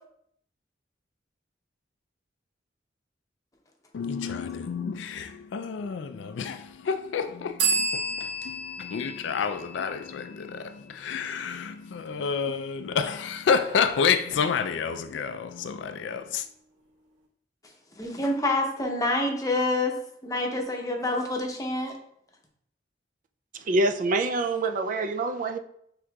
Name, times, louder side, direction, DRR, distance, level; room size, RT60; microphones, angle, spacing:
voice 1, 3.9-16.5, left 6 dB, 75° left, 0.4 m, -29 dB
sound 1, 7.6-11.1, right 3 dB, 85° right, 1.1 m, -31 dB
voice 2, 18.0-20.0 20.2-21.9, left 2 dB, 20° left, 0.7 m, -27 dB
voice 3, 23.5-25.6, right 2 dB, 45° right, 0.3 m, -26 dB
5.9 x 3.6 x 2.3 m
head